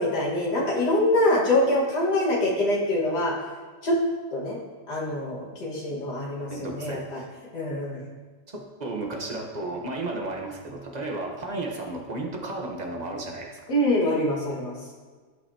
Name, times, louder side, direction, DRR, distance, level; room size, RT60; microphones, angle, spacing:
voice 1, 0.0-3.3 3.8-3.9 4.3-4.6 4.9-7.2 7.5-8.0 13.7-14.8, left 1 dB, 65° left, -3 dB, 2.3 m, -24 dB
voice 2, 6.5-7.3 8.5-13.6, right 2 dB, 30° right, 0 dB, 1.0 m, -33 dB
14.5 x 5.8 x 2.8 m, 1.4 s
omnidirectional pair, 1.9 m